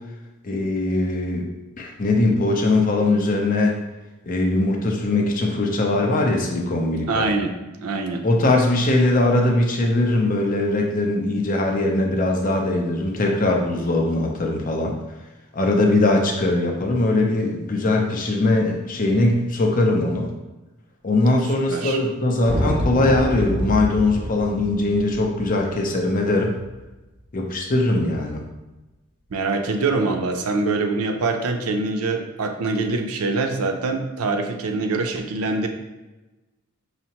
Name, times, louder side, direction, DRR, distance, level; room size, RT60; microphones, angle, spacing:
voice 1, 0.4-1.5 1.8-3.8 4.2-7.3 8.2-14.9 15.5-20.3 21.0-26.6 27.3-28.4, left 2 dB, 40° left, 1 dB, 0.5 m, -21 dB
voice 2, 7.1-7.5 7.8-8.2 21.7-22.0 29.3-35.7, right 3 dB, 85° right, 5 dB, 0.5 m, -24 dB
sound 1, 22.4-26.8, equal, 35° right, 0.5 m, -27 dB
5.6 x 2.1 x 2.8 m, 1.1 s
head